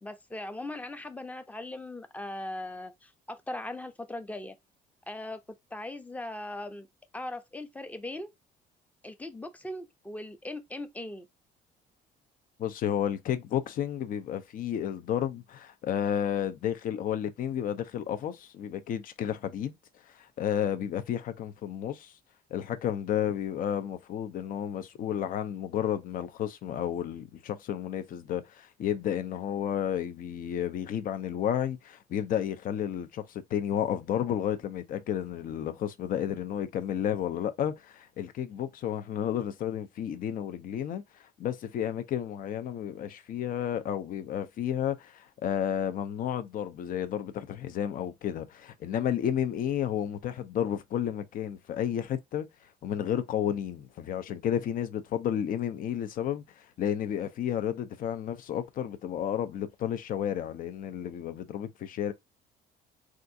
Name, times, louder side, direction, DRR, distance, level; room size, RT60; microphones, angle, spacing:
voice 1, 0.0-4.5 5.1-5.4 5.7-6.9 7.1-8.3 9.0-11.3, left 1 dB, 10° left, 0.5 m, -39 dB
voice 2, 12.6-19.7 20.1-22.1 22.5-62.1, left 10 dB, 55° left, 0.6 m, -32 dB
3.5 x 2.4 x 2.6 m
cardioid pair, 110°, 17 cm